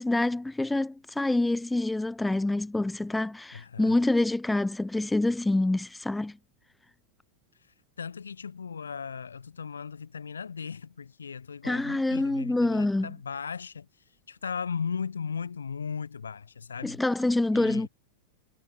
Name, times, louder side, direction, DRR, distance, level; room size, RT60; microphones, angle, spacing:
voice 1, 0.0-6.4 11.6-13.1 16.8-17.9, left 2 dB, 5° left, 1.0 m, -26 dB
voice 2, 3.5-4.0 8.0-13.9 14.3-17.0 17.5-17.9, left 6 dB, 70° left, 5.4 m, -37 dB
figure-of-eight pair, 90°, 0 cm